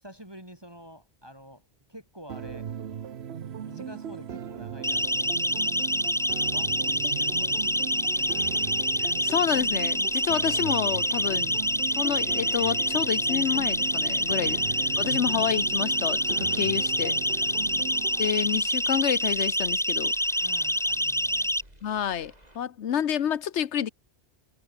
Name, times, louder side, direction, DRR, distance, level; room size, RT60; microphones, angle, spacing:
voice 1, 0.0-2.7 3.6-5.3 6.5-7.6 8.1-8.6 10.5-10.7 14.4-14.8 17.7-17.9 20.4-21.6, equal, 20° right, 5.0 m, -48 dB
sound 1, 2.3-18.3, right 8 dB, 70° right, 1.2 m, -38 dB
Siren, 4.8-21.6, equal, 5° left, 0.8 m, -26 dB
sound 2, 6.0-22.6, right 1 dB, 35° right, 7.5 m, -55 dB
voice 2, 9.2-11.6 12.0-14.6 15.0-17.2 18.2-20.1 21.8-23.9, left 9 dB, 85° left, 1.2 m, -29 dB
omnidirectional pair, 1.1 m